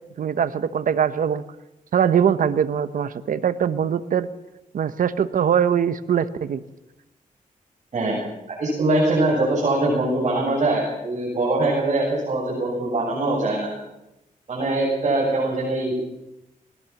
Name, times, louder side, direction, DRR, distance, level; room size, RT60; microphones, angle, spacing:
voice 1, 0.2-1.4 1.9-4.3 4.7-6.6, right 8 dB, 75° right, 13 dB, 1.1 m, -22 dB
voice 2, 8.5-13.7 14.5-15.9, right 2 dB, 55° right, -4 dB, 7.6 m, -22 dB
20.5 x 19.5 x 7.3 m, 0.92 s
wide cardioid pair, 125°, 14 cm